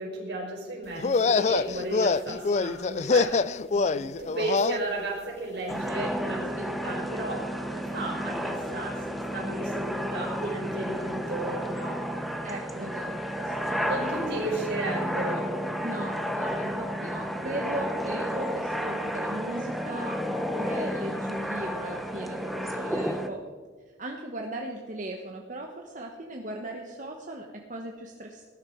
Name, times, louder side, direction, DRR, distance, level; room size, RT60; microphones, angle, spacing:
voice 1, 0.0-12.0 12.7-12.9 13.8-15.5, right 2 dB, 60° right, -2 dB, 4.8 m, -34 dB
sound 1, 1.0-4.8, left 4 dB, 35° left, 0.3 m, -25 dB
sound 2, 5.7-23.3, equal, ahead, 0.9 m, -32 dB
voice 2, 12.4-14.0 15.8-23.4 24.0-28.4, right 1 dB, 40° right, 2 dB, 1.1 m, -38 dB
19.5 x 12.0 x 4.6 m, 1.4 s
head